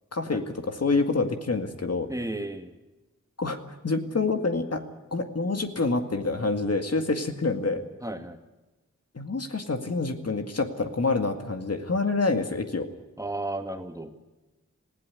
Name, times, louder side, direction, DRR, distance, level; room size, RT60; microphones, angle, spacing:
voice 1, 0.1-2.1 3.4-3.6 3.8-4.8 5.1-7.8 9.1-12.9, left 3 dB, 55° left, 6 dB, 2.1 m, -27 dB
voice 2, 2.1-2.7 8.0-8.4 13.2-14.1, right 1 dB, 10° right, 6 dB, 2.0 m, -33 dB
19.5 x 16.0 x 9.5 m, 1.1 s
wide cardioid pair, 60°, 29 cm